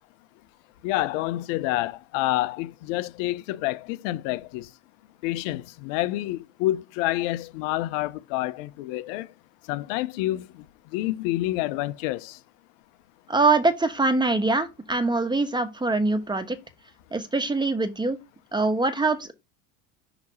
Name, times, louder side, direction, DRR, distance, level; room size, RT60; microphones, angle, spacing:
voice 1, 0.8-4.7 5.2-9.3 9.7-10.6 10.9-12.4, left 16 dB, 75° left, 0.8 m, -28 dB
voice 2, 13.3-16.6 17.1-18.2 18.5-19.3, right 3 dB, 10° right, 1.2 m, -23 dB
6.2 x 2.9 x 5.4 m
hypercardioid pair, 80°, 39 cm